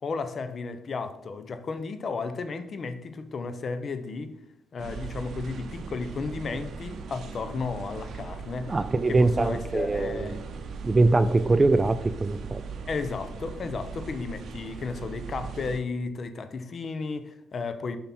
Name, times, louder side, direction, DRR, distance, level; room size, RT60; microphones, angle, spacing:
voice 1, 0.0-4.3 4.7-8.8 9.1-10.4 12.9-18.0, left 4 dB, 45° left, 10 dB, 0.7 m, -33 dB
sound 1, 4.8-15.8, right 5 dB, 60° right, 0.8 m, -39 dB
voice 2, 8.7-10.4 10.8-12.6, right 3 dB, 25° right, 13 dB, 0.4 m, -23 dB
7.1 x 5.6 x 4.3 m, 0.83 s
cardioid pair, 90°, 0 cm